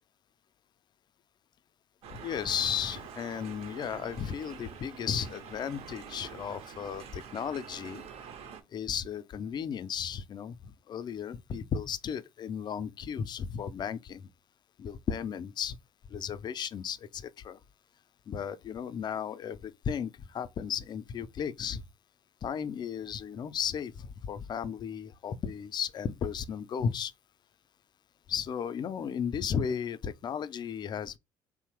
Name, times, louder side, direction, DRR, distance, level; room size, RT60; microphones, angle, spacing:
sound 1, 2.0-8.6, right 7 dB, 55° right, 0.6 m, -46 dB
voice 1, 2.1-8.0 8.7-14.2 14.8-15.8 16.1-17.6 18.3-21.8 22.4-27.1 28.3-31.2, left 7 dB, 35° left, 0.3 m, -35 dB
2.8 x 2.0 x 3.0 m
hypercardioid pair, 65°, 13 cm